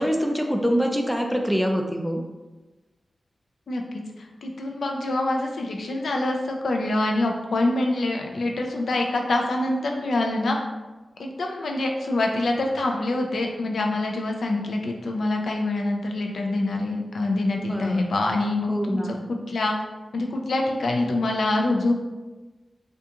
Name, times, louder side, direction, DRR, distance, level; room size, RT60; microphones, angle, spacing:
voice 1, 0.0-2.2 17.6-18.0 18.7-19.2, equal, ahead, 2 dB, 0.3 m, -25 dB
voice 2, 3.7-10.6 11.2-19.7 20.1-21.9, left 2 dB, 85° left, 1 dB, 0.3 m, -25 dB
2.4 x 2.2 x 2.8 m, 1.2 s
wide cardioid pair, 85°, 0 cm